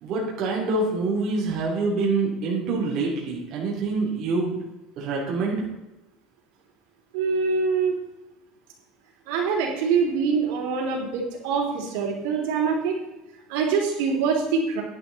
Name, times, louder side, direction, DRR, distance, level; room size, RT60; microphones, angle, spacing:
voice 1, 0.0-4.6 5.0-5.6, right 3 dB, 40° right, -3 dB, 3.0 m, -26 dB
voice 2, 7.1-7.9 9.3-13.0 13.5-14.8, right 5 dB, 80° right, -1 dB, 3.5 m, -24 dB
11.5 x 10.5 x 4.1 m, 1.0 s
cardioid pair, 165°, 0 cm